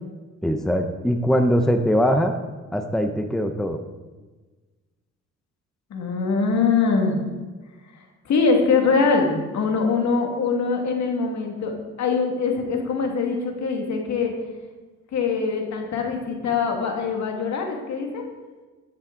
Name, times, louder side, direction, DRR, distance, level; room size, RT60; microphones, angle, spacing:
voice 1, 0.4-2.3 2.7-3.8, equal, ahead, 6 dB, 0.8 m, -21 dB
voice 2, 5.9-7.2 8.3-11.7 12.0-14.3 15.1-18.3, left 4 dB, 65° left, 2 dB, 2.2 m, -23 dB
14.0 x 7.2 x 3.9 m, 1.3 s
cardioid pair, 90°, 30 cm